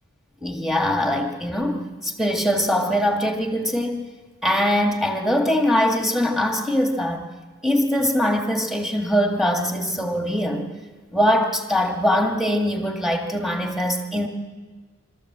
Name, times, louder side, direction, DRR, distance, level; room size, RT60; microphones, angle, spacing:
voice 1, 0.4-4.0 4.4-7.2 7.6-10.7 11.1-14.3, equal, ahead, 3 dB, 2.1 m, -22 dB
25.0 x 14.0 x 7.6 m, 1.4 s
head